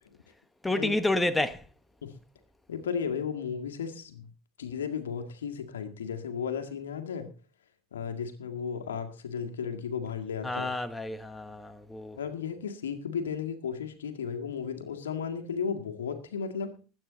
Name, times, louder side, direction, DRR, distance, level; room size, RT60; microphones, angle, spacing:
voice 1, 0.6-1.6 10.4-12.2, left 1 dB, 10° left, 1.1 m, -29 dB
voice 2, 2.7-4.3 4.6-7.3 7.9-10.7 12.2-16.8, left 6 dB, 85° left, 1.9 m, -34 dB
20.5 x 8.9 x 4.0 m
hypercardioid pair, 80°, 0 cm